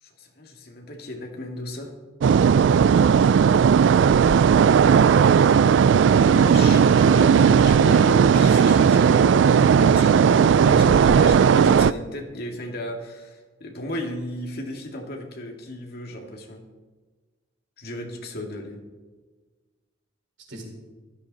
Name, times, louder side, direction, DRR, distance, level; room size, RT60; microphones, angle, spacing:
voice 1, 0.0-1.9 6.0-16.6 17.8-18.8, left 1 dB, 55° left, 1 dB, 2.2 m, -34 dB
sound 1, 2.2-11.9, right 7 dB, 65° right, 0.3 m, -16 dB
voice 2, 3.7-5.3 20.5-20.6, right 1 dB, 85° right, -1 dB, 4.8 m, -42 dB
15.5 x 12.5 x 4.1 m, 1.3 s
head